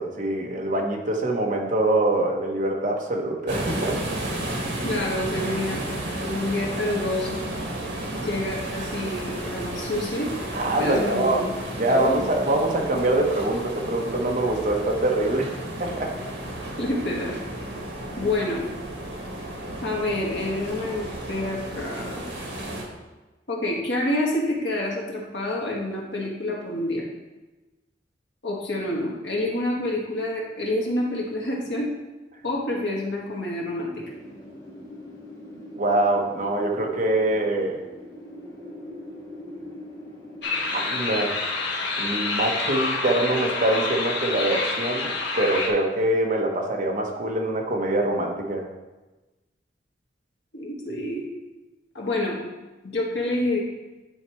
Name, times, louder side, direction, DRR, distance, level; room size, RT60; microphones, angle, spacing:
voice 1, 0.0-4.0 10.5-11.4 11.8-15.5 15.8-16.1 35.8-37.8 40.7-41.3 42.0-48.6, right 1 dB, 45° right, 0 dB, 1.1 m, -24 dB
sound 1, 3.5-22.8, right 1 dB, 70° right, 1.8 m, -33 dB
voice 2, 4.8-6.0 6.2-7.5 8.2-10.3 10.8-11.5 11.9-12.1 16.8-17.3 18.2-18.6 19.8-22.2 23.5-27.1 28.4-31.9 32.4-34.0 50.5-51.3 52.0-52.4 52.8-53.6, left 1 dB, 85° left, -2 dB, 1.7 m, -28 dB
Wind, 34.0-42.7, left 1 dB, 25° left, 2.3 m, -43 dB
sound 2, 40.4-45.7, left 3 dB, 70° left, 1.1 m, -27 dB
10.0 x 4.5 x 3.1 m, 1.1 s
head